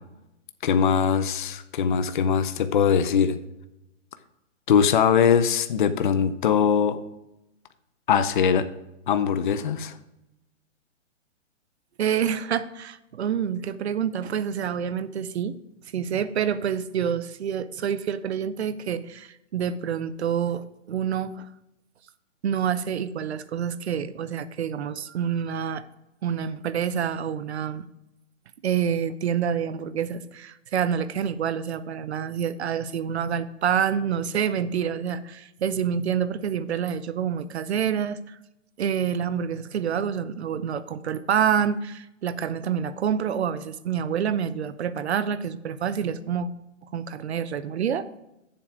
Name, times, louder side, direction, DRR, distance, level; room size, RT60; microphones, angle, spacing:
voice 1, 0.6-3.4 4.7-7.0 8.1-8.7 9.1-9.9, left 7 dB, 40° left, 11 dB, 0.5 m, -21 dB
voice 2, 12.0-15.6 15.9-21.5 22.4-25.8 26.2-27.9 28.6-38.4 38.8-46.5 46.9-48.1, right 8 dB, 60° right, 15 dB, 0.7 m, -27 dB
7.5 x 7.0 x 4.8 m, 0.90 s
hypercardioid pair, 160°, 38 cm